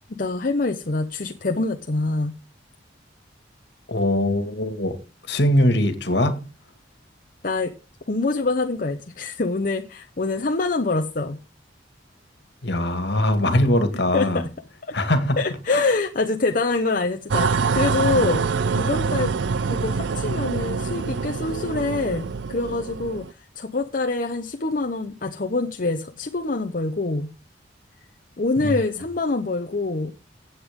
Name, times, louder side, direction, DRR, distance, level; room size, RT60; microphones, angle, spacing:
voice 1, 0.1-2.4 7.4-7.7 8.1-11.4 14.1-14.5 14.8-14.9 15.4-18.4 18.7-19.3 19.6-27.3 28.4-30.1, left 3 dB, 50° left, 0.9 m, -25 dB
voice 2, 3.9-5.0 5.3-6.4 12.6-14.4 14.9-15.3 15.7-15.8 28.6-28.8, left 1 dB, 65° left, 2.1 m, -21 dB
sound 1, 17.3-23.3, right 5 dB, 80° right, 0.5 m, -25 dB
16.0 x 8.1 x 3.7 m
head